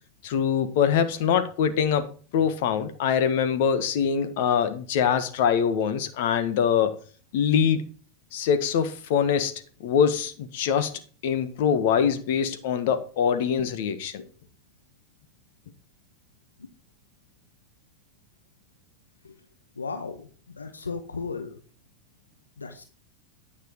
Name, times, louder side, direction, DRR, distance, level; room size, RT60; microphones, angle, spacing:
voice 1, 0.2-6.9 7.3-7.8 8.3-9.5 9.8-10.9 11.2-14.1, left 7 dB, 60° left, 1.5 m, -24 dB
voice 2, 19.8-20.3 20.5-21.6 22.6-22.8, left 4 dB, 90° left, 1.0 m, -35 dB
9.5 x 6.1 x 4.7 m
hypercardioid pair, 90°, 0 cm